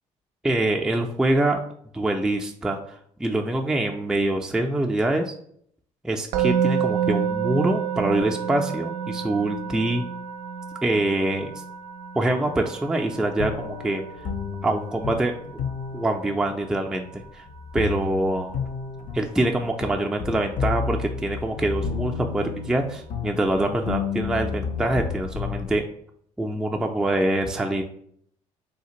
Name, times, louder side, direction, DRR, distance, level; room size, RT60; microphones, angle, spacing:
voice 1, 0.4-1.6 1.9-5.3 6.0-10.0 10.8-11.5 12.2-14.0 14.6-15.4 15.9-17.4 17.7-18.6 19.1-25.8 26.4-27.8, right 1 dB, 5° right, 2 dB, 0.4 m, -25 dB
Musical instrument, 6.3-17.4, right 7 dB, 75° right, 0.4 m, -30 dB
sound 1, 13.4-25.8, left 5 dB, 50° left, 0.5 m, -32 dB
3.3 x 2.4 x 2.8 m, 0.66 s
hypercardioid pair, 60°, 16 cm